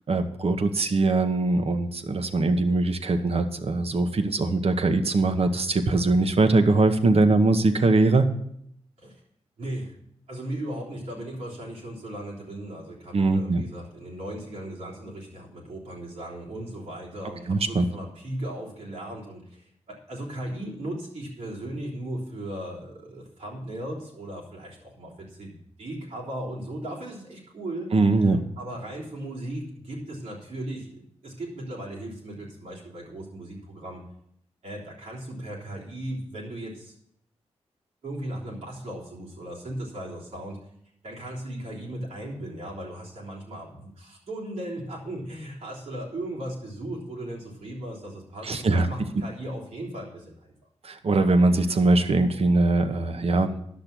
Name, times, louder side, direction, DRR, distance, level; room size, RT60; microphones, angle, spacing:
voice 1, 0.1-8.3 13.1-13.6 17.5-17.8 27.9-28.4 48.4-48.9 50.8-53.6, right 2 dB, 65° right, 8 dB, 1.1 m, -22 dB
voice 2, 9.6-10.0 10.3-27.9 28.2-34.0 34.6-36.9 38.0-40.6 41.0-50.5, right 1 dB, 85° right, -5 dB, 3.6 m, -37 dB
10.5 x 6.8 x 6.0 m, 0.72 s
cardioid pair, 60°, 11 cm